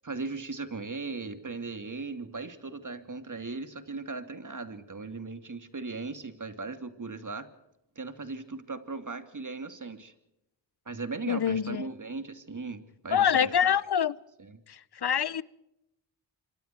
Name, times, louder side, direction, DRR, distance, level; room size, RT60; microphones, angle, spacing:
voice 1, 0.0-7.5 8.0-10.1 10.9-13.7 14.4-14.6, right 3 dB, 40° right, 2.8 m, -38 dB
voice 2, 11.3-11.9 13.1-14.2 14.7-15.4, left 8 dB, 55° left, 1.0 m, -25 dB
27.5 x 24.5 x 4.6 m
cardioid pair, 45°, 46 cm